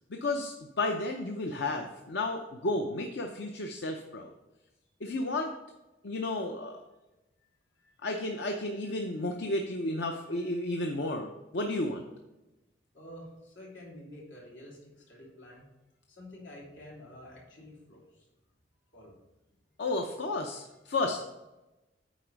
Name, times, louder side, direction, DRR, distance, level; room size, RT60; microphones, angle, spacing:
voice 1, 0.1-4.3 5.0-5.5 6.0-6.8 8.0-12.0 19.8-21.2, left 2 dB, 65° left, 3 dB, 0.6 m, -32 dB
voice 2, 12.9-15.7 16.1-18.2 18.9-19.2, left 1 dB, 85° left, -4 dB, 3.0 m, -49 dB
9.2 x 4.2 x 5.1 m, 1.0 s
head